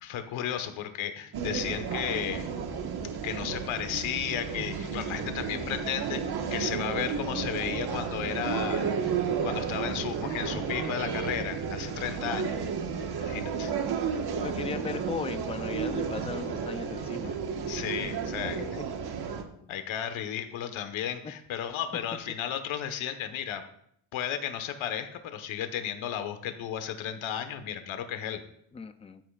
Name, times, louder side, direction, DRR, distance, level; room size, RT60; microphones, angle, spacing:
voice 1, 0.0-2.5 3.2-6.2 6.5-12.7 13.2-13.7 17.6-18.6 19.7-23.6 24.1-28.4, left 9 dB, 80° left, 8 dB, 1.5 m, -34 dB
sound 1, 1.3-19.4, right 6 dB, 55° right, 1.6 m, -32 dB
voice 2, 14.3-17.4 19.6-19.7 21.2-21.3 28.7-29.2, left 5 dB, 15° left, 9 dB, 0.5 m, -37 dB
15.0 x 12.5 x 2.5 m, 0.70 s
cardioid pair, 145°, 47 cm